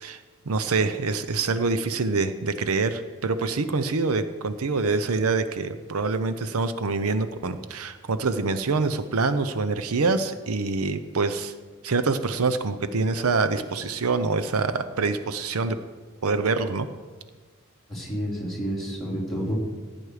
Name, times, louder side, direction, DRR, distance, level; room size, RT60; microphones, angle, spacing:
voice 1, 0.5-11.5 11.8-15.8 16.2-16.9, right 4 dB, 80° right, 11 dB, 0.7 m, -25 dB
voice 2, 17.9-19.6, equal, ahead, -7 dB, 3.7 m, -29 dB
15.5 x 9.5 x 4.9 m, 1.5 s
head